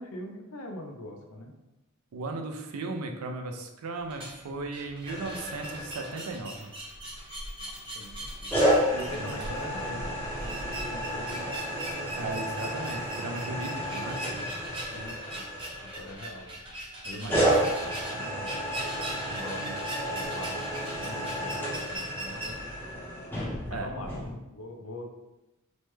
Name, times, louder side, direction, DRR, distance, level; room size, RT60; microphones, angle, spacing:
voice 1, 0.0-1.5 7.6-8.5 8.9-11.6 14.9-15.4 15.8-16.6 17.0-18.7 19.1-19.8 20.1-22.8 23.7-25.1, left 1 dB, 70° left, 3 dB, 0.5 m, -42 dB
voice 2, 2.1-6.7 9.1-10.0 12.1-14.2 17.2-17.5 23.7-23.9, right 3 dB, 80° right, 4 dB, 0.4 m, -36 dB
sound 1, 4.0-22.5, right 1 dB, 25° right, 0.6 m, -41 dB
sound 2, 5.1-6.6 8.5-16.3 17.3-24.3, equal, 10° left, 0.8 m, -31 dB
3.0 x 2.1 x 3.2 m, 0.96 s
head